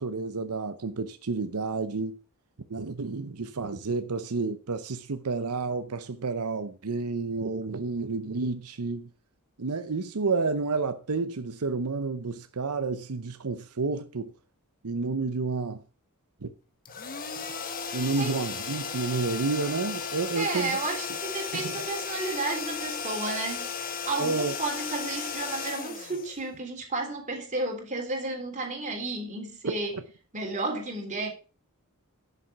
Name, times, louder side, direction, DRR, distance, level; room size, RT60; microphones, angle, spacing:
voice 1, 0.0-2.1 2.7-9.1 9.6-14.3 14.8-15.8 16.4-16.5 17.9-20.8 21.5-21.9 24.2-24.6, right 4 dB, 90° right, 0.8 m, -30 dB
sound 1, 16.9-26.8, left 6 dB, 40° left, 1.5 m, -35 dB
voice 2, 20.3-23.7 24.1-30.0 30.3-31.3, right 3 dB, 35° right, 3.5 m, -32 dB
11.0 x 7.0 x 5.8 m
head